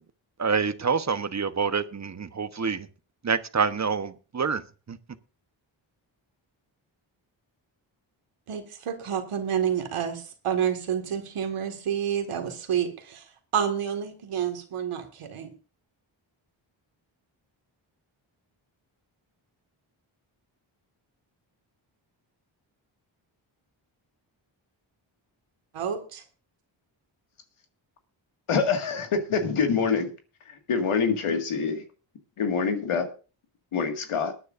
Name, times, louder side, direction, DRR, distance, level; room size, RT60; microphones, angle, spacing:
voice 1, 0.4-2.9 3.2-4.6 4.9-5.0, right 5 dB, 35° right, 1.0 m, -27 dB
voice 2, 8.5-15.5 25.7-26.2, right 8 dB, 85° right, 1.9 m, -29 dB
voice 3, 28.5-30.1 30.7-31.8 32.4-33.1 33.7-34.3, left 5 dB, 85° left, 2.0 m, -25 dB
22.0 x 9.5 x 2.5 m
cardioid pair, 55°, 49 cm